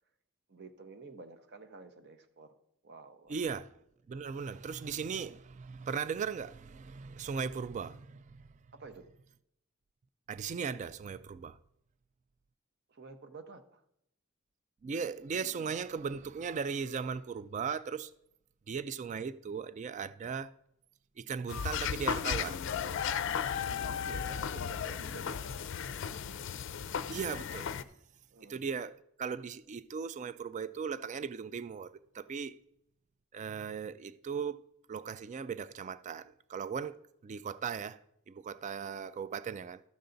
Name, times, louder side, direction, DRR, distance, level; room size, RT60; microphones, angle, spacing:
voice 1, 0.5-2.5 2.8-3.6 8.7-9.1 12.9-13.8 23.6-26.5 28.3-28.8, right 3 dB, 55° right, 0.8 m, -51 dB
voice 2, 3.3-3.8 4.1-8.5 10.3-11.6 14.8-18.1 18.7-20.5 21.2-22.6 27.1-27.7 28.5-32.5 33.3-34.6 34.9-38.0 38.3-39.8, right 6 dB, 35° right, 0.3 m, -38 dB
sound 1, 21.5-27.8, left 7 dB, 60° left, 0.4 m, -35 dB
12.5 x 6.8 x 3.9 m
head